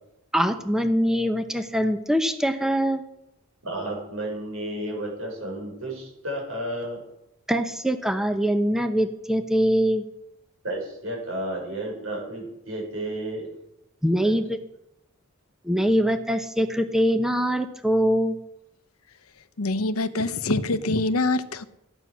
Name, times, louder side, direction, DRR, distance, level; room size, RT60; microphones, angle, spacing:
voice 1, 0.3-3.0 7.5-10.0 14.0-14.6 15.6-18.4, equal, ahead, 0.8 m, -23 dB
voice 2, 3.6-7.0 10.6-13.5 14.2-14.3, right 1 dB, 65° right, 5.9 m, -32 dB
voice 3, 19.6-21.6, left 2 dB, 80° left, 0.9 m, -25 dB
14.5 x 9.5 x 6.2 m
head